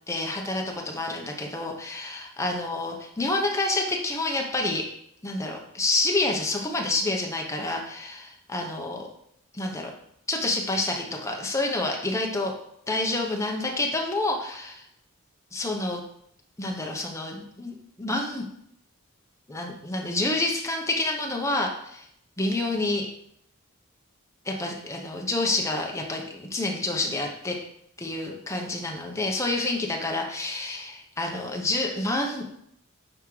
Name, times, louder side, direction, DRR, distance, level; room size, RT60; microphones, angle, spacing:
voice 1, 0.1-4.8 5.2-9.1 9.5-9.9 10.3-12.5 12.9-14.7 15.5-16.0 16.6-18.4 19.5-22.0 22.4-23.1 24.4-27.6 28.0-32.5, left 2 dB, 15° left, 0 dB, 0.8 m, -28 dB
9.6 x 3.6 x 3.2 m, 0.72 s
head